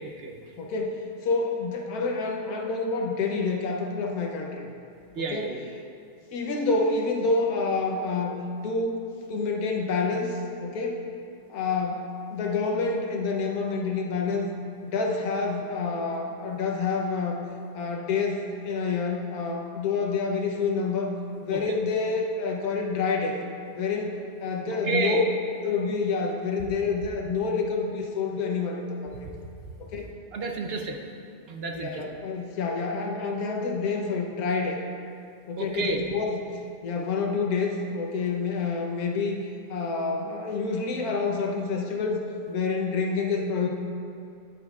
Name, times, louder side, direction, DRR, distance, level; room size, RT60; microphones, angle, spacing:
voice 1, 0.0-0.4 5.2-5.6 21.5-21.7 24.7-25.2 30.3-31.0 31.5-32.0 35.6-36.0, right 4 dB, 55° right, 3 dB, 0.7 m, -30 dB
voice 2, 0.6-4.7 5.2-5.5 6.3-11.0 11.5-14.5 14.8-17.4 17.7-21.1 21.4-23.4 23.7-25.2 25.6-29.1 29.8-30.1 31.7-34.8 35.5-36.4 36.8-39.4 39.7-43.7, left 4 dB, 90° left, 1 dB, 1.3 m, -28 dB
10.0 x 8.9 x 2.4 m, 2.5 s
omnidirectional pair, 1.5 m